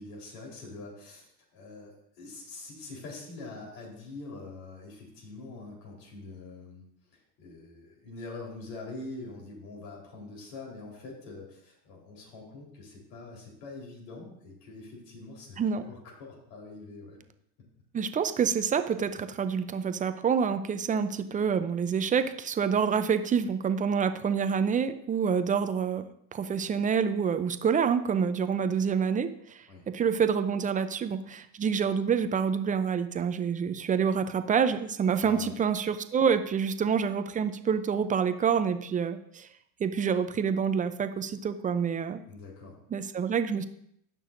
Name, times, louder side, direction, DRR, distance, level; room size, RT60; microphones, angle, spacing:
voice 1, 0.0-6.8 7.1-17.2 29.7-29.9 35.2-35.5 42.3-42.8, left 3 dB, 75° left, -2 dB, 4.0 m, -44 dB
voice 2, 17.9-39.5 39.8-42.2 42.9-43.7, right 6 dB, 15° right, 10 dB, 0.5 m, -27 dB
17.0 x 6.2 x 2.6 m, 0.72 s
supercardioid pair, 105°, 49 cm